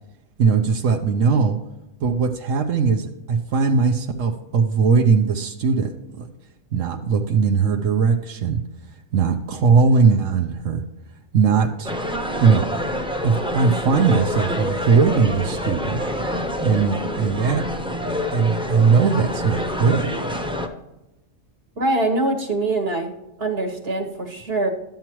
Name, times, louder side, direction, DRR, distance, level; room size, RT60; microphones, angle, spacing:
voice 1, 0.4-1.6 2.0-6.3 6.7-8.6 9.1-10.8 11.3-11.9 12.4-12.7 13.2-16.0 16.6-17.7 18.3-20.1, right 5 dB, 85° right, 5 dB, 1.1 m, -19 dB
sound 1, 11.8-20.7, equal, 5° right, 0.5 m, -27 dB
voice 2, 21.8-23.1 23.4-24.7, right 2 dB, 55° right, 3 dB, 1.5 m, -23 dB
12.0 x 7.3 x 3.0 m, 0.95 s
omnidirectional pair, 1.3 m